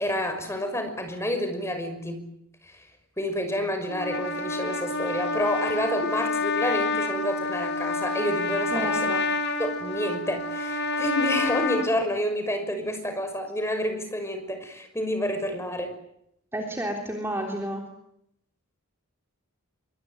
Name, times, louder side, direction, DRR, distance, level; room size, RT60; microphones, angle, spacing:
voice 1, 0.0-2.3 2.6-2.9 3.2-9.2 9.6-15.9, equal, 10° left, 7 dB, 6.1 m, -29 dB
Trumpet, 3.9-11.9, left 3 dB, 50° left, 2.6 m, -28 dB
voice 2, 8.7-9.1 16.5-17.8, right 1 dB, 10° right, 2 dB, 3.5 m, -31 dB
25.5 x 24.5 x 9.3 m, 0.76 s
head